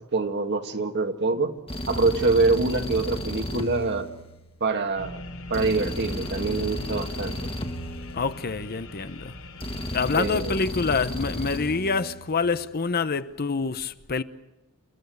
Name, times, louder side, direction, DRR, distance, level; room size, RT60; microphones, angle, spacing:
voice 1, 0.1-1.6 1.9-4.1 4.6-5.2 5.5-7.4 10.1-10.6, right 3 dB, 50° right, 2.1 m, -25 dB
sound 1, 1.7-4.8 5.5-8.8 9.6-12.5, left 1 dB, 25° left, 1.9 m, -34 dB
sound 2, 4.9-10.2, left 1 dB, 75° left, 6.2 m, -41 dB
voice 2, 8.1-9.3 9.9-14.2, left 4 dB, 45° left, 0.9 m, -26 dB
29.0 x 14.5 x 9.5 m
head